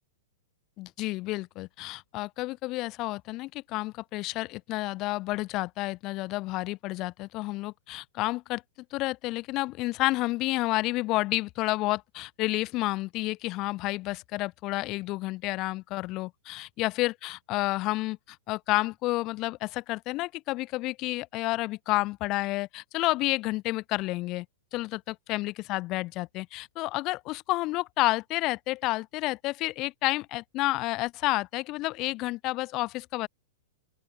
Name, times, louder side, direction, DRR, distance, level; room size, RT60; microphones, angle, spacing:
voice 1, 0.8-8.6 8.9-24.4 24.7-33.3, left 20 dB, 25° left, 2.9 m, -30 dB
open air
supercardioid pair, 175°, 0 cm